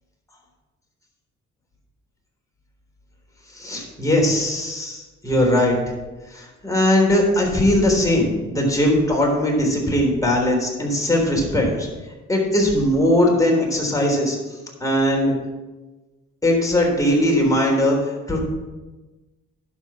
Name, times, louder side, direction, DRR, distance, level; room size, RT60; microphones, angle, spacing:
voice 1, 3.5-5.8 6.3-11.9 12.3-14.4 14.8-15.3 16.4-18.0 18.3-18.4, left 1 dB, 10° left, -1 dB, 3.7 m, -19 dB
11.5 x 5.3 x 5.9 m, 1.2 s
cardioid pair, 90°, 30 cm